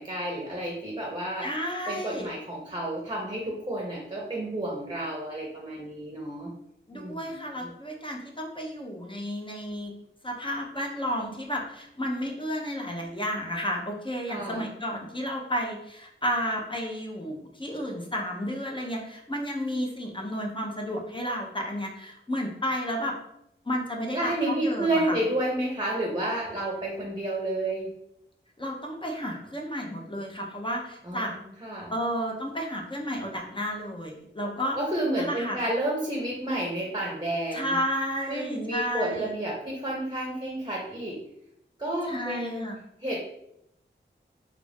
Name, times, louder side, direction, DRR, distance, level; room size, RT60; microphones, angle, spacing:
voice 1, 0.0-1.5 1.9-6.5 6.9-7.7 14.3-14.6 24.1-27.9 31.0-31.9 34.8-37.8 38.3-41.2 41.8-42.7 43.0-43.2, right 1 dB, 20° right, -2 dB, 0.7 m, -30 dB
voice 2, 1.4-2.3 6.9-9.9 10.2-23.2 23.7-25.2 28.6-31.4 31.9-34.8 35.2-35.6 37.5-39.3 42.1-42.8, equal, 25° left, 0 dB, 0.7 m, -32 dB
3.1 x 2.5 x 3.4 m, 0.77 s
wide cardioid pair, 65°, 20 cm